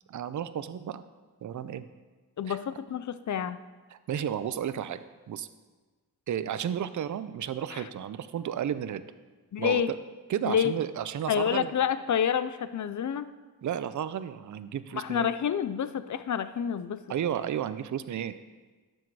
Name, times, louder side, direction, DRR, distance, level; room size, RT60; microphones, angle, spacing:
voice 1, 0.1-1.0 1.4-1.9 2.5-2.6 3.9-5.0 5.3-5.5 6.3-9.0 9.6-10.0 10.3-11.7 13.6-15.3 17.1-18.3, right 9 dB, 50° right, 13 dB, 0.5 m, -32 dB
voice 2, 2.4-3.6 7.7-7.8 9.5-9.9 10.4-10.7 11.3-13.3 14.9-17.0, left 8 dB, 50° left, 13 dB, 0.5 m, -28 dB
12.0 x 6.2 x 4.7 m, 1.3 s
wide cardioid pair, 135°, 39 cm